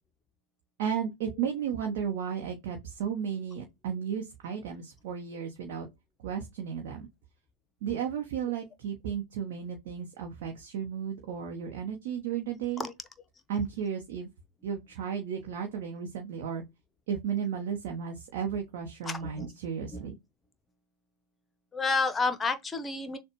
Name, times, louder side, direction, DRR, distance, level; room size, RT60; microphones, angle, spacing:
voice 1, 0.8-5.9 6.2-7.1 7.8-12.9 13.5-14.3 14.6-16.6 17.1-20.1, right 7 dB, 50° right, 1.0 m, -34 dB
voice 2, 19.1-19.5 19.9-20.1 21.7-23.2, left 4 dB, 15° left, 0.8 m, -30 dB
6.6 x 2.2 x 3.0 m
figure-of-eight pair, 90°, 0 cm